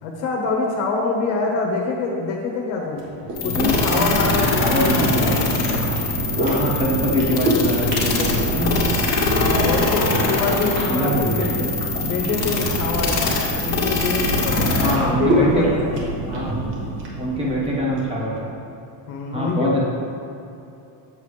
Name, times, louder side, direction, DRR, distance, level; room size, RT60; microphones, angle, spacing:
voice 1, 0.0-3.0 3.4-5.4 6.2-6.3 9.2-11.7 11.9-13.4 13.6-15.9 19.1-19.8, left 3 dB, 90° left, -2 dB, 1.3 m, -25 dB
sound 1, 2.9-18.2, right 1 dB, 55° right, 1.7 m, -26 dB
sound 2, 3.3-14.9, left 3 dB, 45° left, 1.6 m, -23 dB
voice 2, 3.4-4.1 4.5-5.3 6.4-8.8 10.1-10.5 10.9-11.4 14.8-15.7 16.3-16.6 17.2-18.5 19.3-19.8, equal, 10° right, -5 dB, 1.3 m, -23 dB
7.7 x 7.4 x 3.3 m, 2.8 s
cardioid pair, 160°, 49 cm